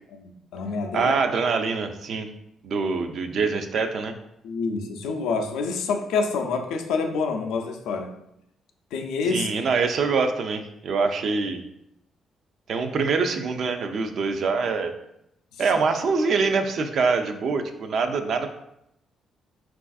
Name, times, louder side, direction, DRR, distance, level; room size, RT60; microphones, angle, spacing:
voice 1, 0.1-1.1 4.4-8.1 8.9-9.5, left 4 dB, 90° left, 5 dB, 0.3 m, -27 dB
voice 2, 0.9-2.3 2.6-4.2 9.3-11.6 12.7-14.9 15.6-18.5, right 4 dB, 60° right, 7 dB, 0.3 m, -24 dB
3.3 x 2.4 x 2.3 m, 0.80 s
cardioid pair, 90°, 0 cm